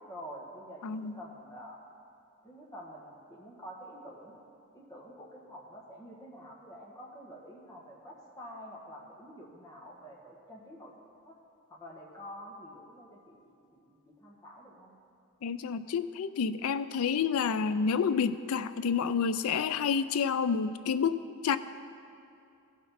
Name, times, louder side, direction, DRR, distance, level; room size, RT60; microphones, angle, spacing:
voice 1, 0.0-1.8 2.4-4.4 4.7-10.9 11.2-11.3 11.7-14.9, equal, 15° left, -3 dB, 1.4 m, -48 dB
voice 2, 0.8-1.1 15.4-21.2 21.4-21.6, left 6 dB, 75° left, 13 dB, 0.4 m, -29 dB
15.5 x 6.0 x 4.2 m, 2.6 s
head